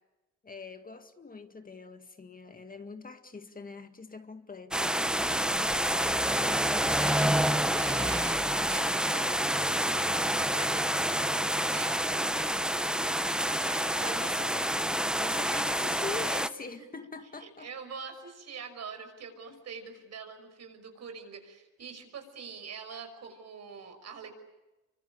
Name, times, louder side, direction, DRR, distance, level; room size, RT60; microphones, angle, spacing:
voice 1, 0.4-5.0 13.5-13.6 14.0-14.8 15.2-17.7 19.5-19.6, left 4 dB, 30° left, 2.0 m, -43 dB
sound 1, 4.7-16.5, equal, 5° right, 1.1 m, -28 dB
voice 2, 5.7-14.3 16.8-16.9 17.4-24.4, right 6 dB, 60° right, 6.0 m, -45 dB
27.0 x 24.5 x 8.7 m
cardioid pair, 90°, 30 cm